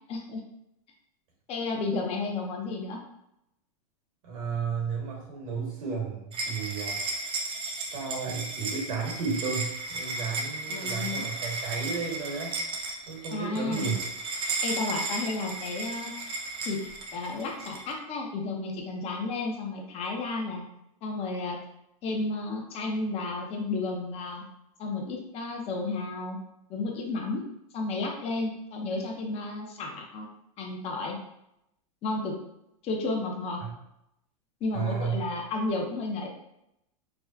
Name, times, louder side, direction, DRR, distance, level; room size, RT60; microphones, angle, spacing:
voice 1, 0.1-0.4 1.5-3.0 10.7-11.3 13.3-14.0 14.4-16.1 16.6-16.8 17.1-20.6 21.0-21.6 22.0-24.4 24.8-26.4 26.7-27.4 27.7-30.3 30.6-31.2 32.0-32.4 32.8-33.6 34.6-36.3, left 3 dB, 35° left, 1 dB, 0.8 m, -32 dB
voice 2, 4.2-7.0 7.9-12.5 13.1-14.0 33.6-33.7 34.7-35.3, right 5 dB, 75° right, -2 dB, 1.2 m, -33 dB
sound 1, 6.3-17.9, right 3 dB, 30° right, 0.6 m, -34 dB
4.8 x 2.2 x 2.4 m, 0.82 s
supercardioid pair, 130°, 18 cm